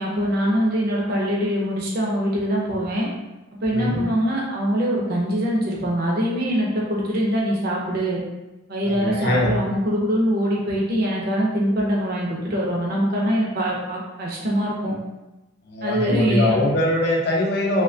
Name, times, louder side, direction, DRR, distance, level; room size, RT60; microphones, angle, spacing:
voice 1, 0.0-3.1 3.6-8.2 8.7-14.9 15.8-16.6, equal, 45° right, -3 dB, 0.5 m, -23 dB
voice 2, 3.7-4.1 8.8-9.5 15.7-17.8, left 1 dB, 50° left, -1 dB, 0.4 m, -22 dB
2.7 x 2.1 x 2.6 m, 1.0 s
head